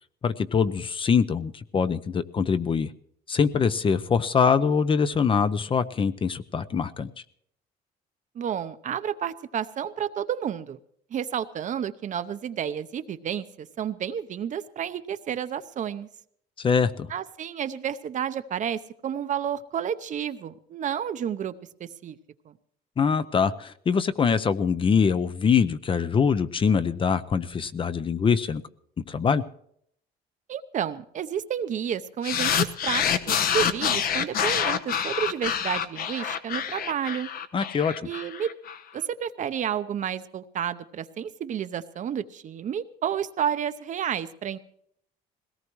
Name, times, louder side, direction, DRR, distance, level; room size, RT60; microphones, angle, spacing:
voice 1, 0.2-2.9 3.3-7.1 16.6-17.1 23.0-28.6 29.1-29.4 37.5-38.1, left 6 dB, 30° left, 13 dB, 0.6 m, -23 dB
voice 2, 8.3-10.8 11.1-16.1 17.1-21.5 21.8-22.2 22.5-22.6 30.5-37.3 38.0-38.5 38.9-44.6, right 9 dB, 45° right, 11 dB, 0.8 m, -31 dB
sound 1, 32.2-38.8, left 8 dB, 60° left, 1.0 m, -27 dB
20.5 x 18.0 x 3.1 m, 0.67 s
cardioid pair, 110°, 17 cm